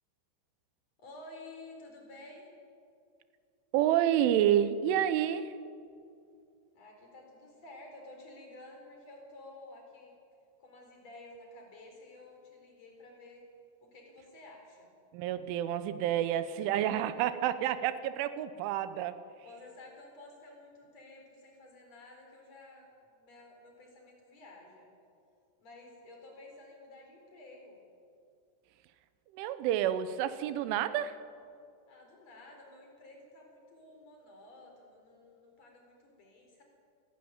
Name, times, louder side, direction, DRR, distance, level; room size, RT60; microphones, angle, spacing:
voice 1, 1.0-2.5 6.7-10.1 10.6-13.4 13.8-14.9 16.5-17.3 19.4-24.9 25.6-27.8 31.9-36.6, left 2 dB, 35° left, 1 dB, 5.2 m, -52 dB
voice 2, 3.7-5.5 15.1-19.2 29.3-31.2, right 11 dB, 90° right, 12 dB, 3.3 m, -29 dB
29.0 x 12.0 x 9.5 m, 2.4 s
omnidirectional pair, 5.4 m